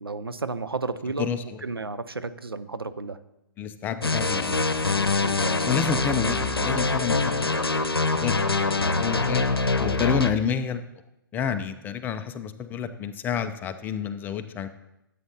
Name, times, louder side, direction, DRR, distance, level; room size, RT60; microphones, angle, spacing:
voice 1, 0.0-1.3 1.6-3.2 5.2-5.7, right 3 dB, 85° right, 13 dB, 0.6 m, -32 dB
voice 2, 3.6-4.6 5.7-7.8 8.2-8.7 9.0-9.5 9.8-10.8 11.3-14.7, left 7 dB, 15° left, 9 dB, 0.6 m, -29 dB
sound 1, 4.0-10.3, left 3 dB, 85° left, 0.8 m, -24 dB
14.0 x 8.4 x 2.8 m, 0.87 s
figure-of-eight pair, 125°, 12 cm